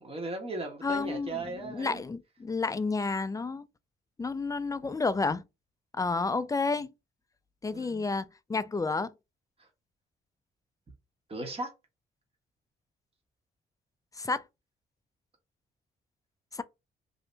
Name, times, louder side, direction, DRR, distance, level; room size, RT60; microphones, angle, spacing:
voice 1, 0.0-2.0 7.7-8.1 9.6-9.7 11.3-11.7, right 2 dB, 30° right, 1.3 m, -37 dB
voice 2, 0.8-3.7 4.2-5.4 6.0-6.9 7.6-9.1 14.2-14.4 16.5-16.6, left 3 dB, 15° left, 0.4 m, -30 dB
2.7 x 2.6 x 3.3 m
cardioid pair, 65°, 20 cm